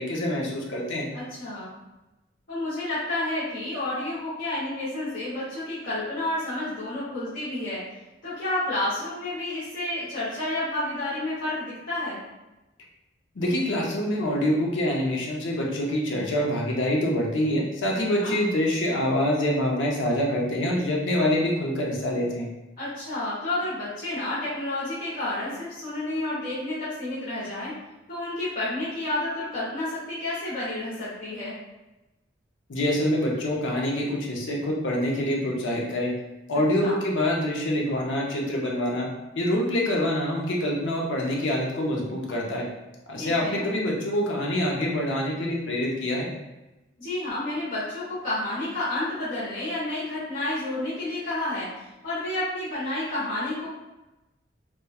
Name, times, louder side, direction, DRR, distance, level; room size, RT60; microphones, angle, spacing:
voice 1, 0.0-1.1 13.3-22.5 32.7-36.1 36.5-39.1 39.4-42.7 43.1-46.3, left 1 dB, 75° left, -1 dB, 0.6 m, -25 dB
voice 2, 1.1-1.7 2.5-7.8 8.2-12.2 18.0-18.3 22.8-27.8 28.1-31.5 36.8-36.9 43.2-43.6 47.0-53.7, left 1 dB, 45° left, -11 dB, 0.8 m, -30 dB
3.0 x 2.2 x 2.2 m, 1.0 s
head